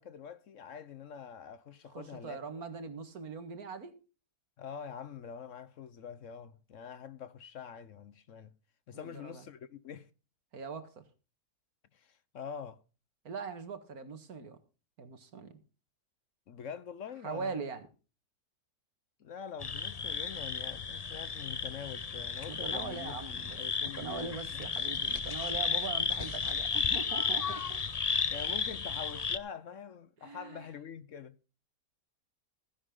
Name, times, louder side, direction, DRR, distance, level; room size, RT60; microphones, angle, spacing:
voice 1, 0.0-2.4 4.6-8.5 8.9-10.1 11.9-12.8 16.5-17.7 19.2-24.6 28.1-31.3, left 7 dB, 60° left, 1.0 m, -45 dB
voice 2, 1.9-4.0 8.9-9.5 10.5-11.0 13.2-14.6 15.0-15.5 17.2-17.9 22.5-27.8 30.2-30.7, right 5 dB, 70° right, 2.0 m, -41 dB
sound 1, 19.6-29.4, left 5 dB, 35° left, 0.6 m, -34 dB
15.5 x 10.5 x 3.7 m
omnidirectional pair, 1.6 m